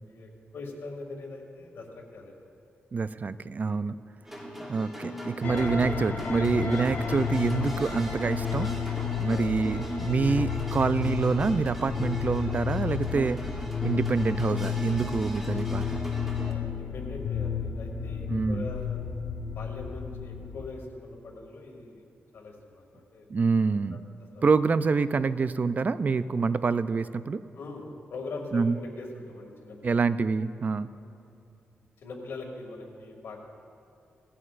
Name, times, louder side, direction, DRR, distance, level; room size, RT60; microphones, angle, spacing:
voice 1, 0.0-2.3 3.6-3.8 9.3-9.6 14.8-15.0 16.4-19.0 19.5-22.0 22.3-23.3 23.9-24.0 24.3-24.4 27.6-30.0 32.0-33.4, left 3 dB, 75° left, 1 dB, 2.3 m, -42 dB
voice 2, 2.9-4.0 4.7-8.7 9.2-13.4 13.8-16.0 18.3-18.7 23.3-24.0 24.4-27.4 28.5-28.8 29.8-30.9, right 4 dB, 40° right, 14 dB, 0.4 m, -26 dB
sound 1, 4.3-16.5, equal, 5° right, 1.9 m, -38 dB
sound 2, 5.4-20.7, left 7 dB, 55° left, 1.1 m, -32 dB
19.5 x 15.0 x 2.5 m, 2.6 s
cardioid pair, 85°, 4 cm